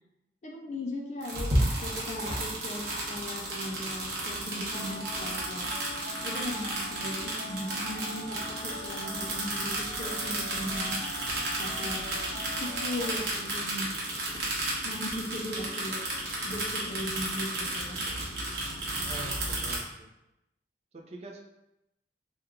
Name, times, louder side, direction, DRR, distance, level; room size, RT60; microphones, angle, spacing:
voice 1, 0.4-5.7 6.2-11.1 11.6-12.2 12.6-13.9 14.3-14.4 14.8-16.1 16.4-18.3, left 1 dB, 40° left, 1 dB, 0.4 m, -38 dB
sound 1, 1.2-19.8, right 1 dB, 65° right, 0.9 m, -33 dB
sound 2, 4.7-13.2, left 1 dB, 75° left, 0.7 m, -43 dB
voice 2, 19.0-20.1 20.9-21.4, right 2 dB, 35° right, 1 dB, 0.4 m, -45 dB
3.0 x 2.3 x 3.5 m, 0.89 s
head